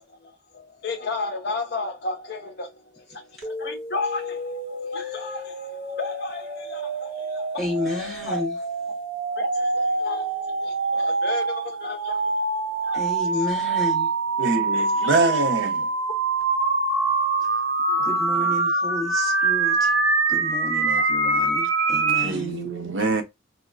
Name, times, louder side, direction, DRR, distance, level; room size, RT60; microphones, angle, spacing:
voice 1, 0.0-8.4 9.3-13.4 14.7-15.2 18.0-18.1 18.4-18.5 21.0-21.1, left 2 dB, 55° left, 0.7 m, -34 dB
sound 1, 3.4-22.3, right 3 dB, 80° right, 1.0 m, -25 dB
voice 2, 7.6-8.5 12.9-14.1 17.4-20.0 20.3-22.6, left 2 dB, ahead, 1.1 m, -32 dB
voice 3, 14.4-15.9 22.2-23.2, right 2 dB, 65° right, 0.6 m, -24 dB
3.7 x 2.1 x 2.3 m
head